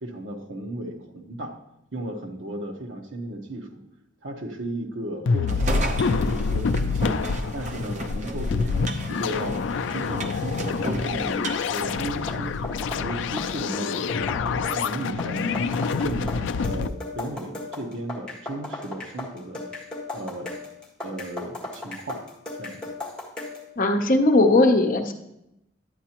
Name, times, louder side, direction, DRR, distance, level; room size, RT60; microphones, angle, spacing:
voice 1, 0.0-1.6 1.9-3.8 4.2-7.2 7.5-12.6 13.0-15.7 16.0-19.6 20.1-20.6 21.0-22.2 22.5-22.9, right 1 dB, 75° right, 2 dB, 1.1 m, -35 dB
sound 1, 5.3-16.9, left 4 dB, 70° left, 0.3 m, -27 dB
sound 2, 5.5-12.7, right 1 dB, 40° right, 0.8 m, -34 dB
sound 3, 12.1-23.7, left 2 dB, 5° left, 1.6 m, -36 dB
voice 2, 23.8-25.1, left 2 dB, 45° left, 5 dB, 0.7 m, -18 dB
11.5 x 8.5 x 2.9 m, 0.86 s
head